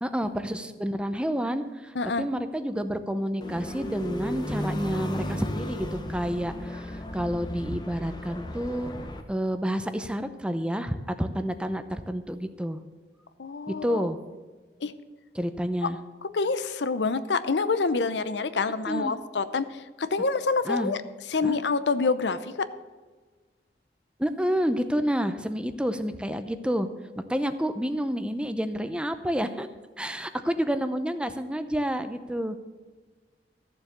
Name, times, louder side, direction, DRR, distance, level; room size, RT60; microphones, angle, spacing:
voice 1, 0.0-8.9 9.3-12.8 13.7-14.2 15.3-16.0 18.9-19.1 20.6-20.9 21.4-21.6 24.2-26.9 27.2-29.7 30.0-32.6, equal, 5° right, 10 dB, 0.6 m, -29 dB
voice 2, 1.9-2.3 13.4-14.1 14.8-14.9 16.3-21.0 21.3-22.7, left 4 dB, 80° left, 13 dB, 0.7 m, -27 dB
sound 1, 3.4-9.2, equal, 25° left, 1.0 m, -34 dB
14.0 x 7.3 x 6.7 m, 1.4 s
head